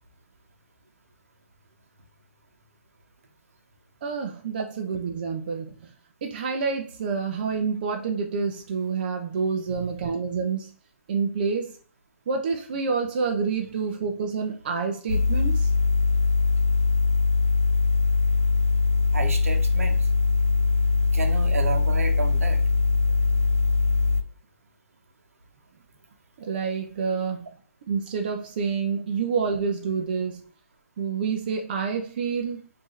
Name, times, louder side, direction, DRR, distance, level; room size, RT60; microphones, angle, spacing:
voice 1, 4.0-5.9 6.2-10.7 11.1-11.7 12.3-15.7 26.4-27.5 27.9-30.4 31.0-32.7, right 5 dB, 40° right, 3 dB, 0.5 m, -28 dB
sound 1, 15.1-24.2, left 3 dB, 75° left, 0.8 m, -22 dB
voice 2, 19.1-20.1 21.1-22.6, right 4 dB, 75° right, 6 dB, 0.9 m, -31 dB
4.4 x 2.7 x 3.1 m, 0.42 s
hypercardioid pair, 155°, 8 cm